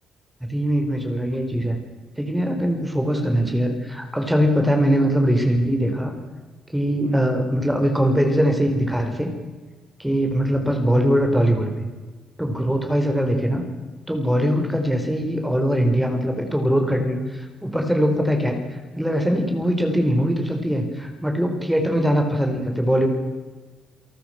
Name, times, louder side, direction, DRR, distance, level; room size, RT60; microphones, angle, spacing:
voice 1, 0.5-1.8 2.2-6.1 6.7-9.3 10.0-11.8 12.4-13.6 14.1-23.1, equal, 5° right, 4 dB, 4.6 m, -21 dB
28.5 x 18.5 x 6.1 m, 1.3 s
cardioid pair, 90°, 0 cm